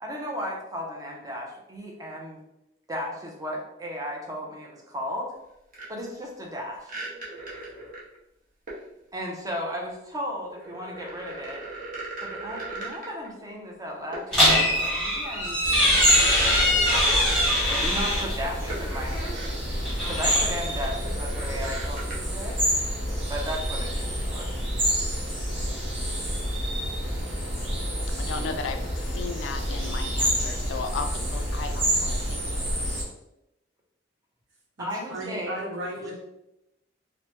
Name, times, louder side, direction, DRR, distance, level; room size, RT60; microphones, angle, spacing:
voice 1, 0.0-2.4 2.9-5.3 5.9-6.9 9.1-11.7 12.2-19.6 20.1-22.6 23.3-24.5 34.8-35.6, equal, 20° right, -1 dB, 0.5 m, -35 dB
sound 1, 5.7-5.9 6.8-8.1 8.7-8.9 10.4-13.3 14.1-14.3 14.7-14.9 15.4-17.5 18.7-19.6 20.0-20.1 20.9-22.1, right 2 dB, 45° right, 0.8 m, -38 dB
sound 2, 14.3-18.4 19.7-20.9, equal, ahead, 1.2 m, -23 dB
sound 3, 15.6-33.0, equal, 60° right, 1.3 m, -28 dB
voice 2, 28.2-32.6, left 4 dB, 70° left, 7 dB, 0.3 m, -35 dB
voice 3, 35.1-36.2, right 1 dB, 80° right, -2 dB, 0.9 m, -34 dB
3.1 x 2.1 x 3.0 m, 0.86 s
head